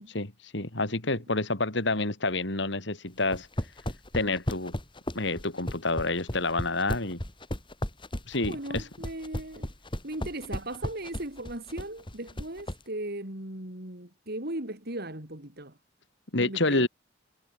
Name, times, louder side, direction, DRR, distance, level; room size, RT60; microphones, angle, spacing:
voice 1, 0.0-3.5 4.1-4.7 5.2-7.2 8.3-8.9 16.3-16.9, left 2 dB, 65° left, 3.5 m, -28 dB
sound 1, 3.2-12.8, equal, 25° left, 4.1 m, -34 dB
voice 2, 8.4-9.7 10.0-15.7 16.3-16.9, right 1 dB, 55° right, 5.2 m, -37 dB
head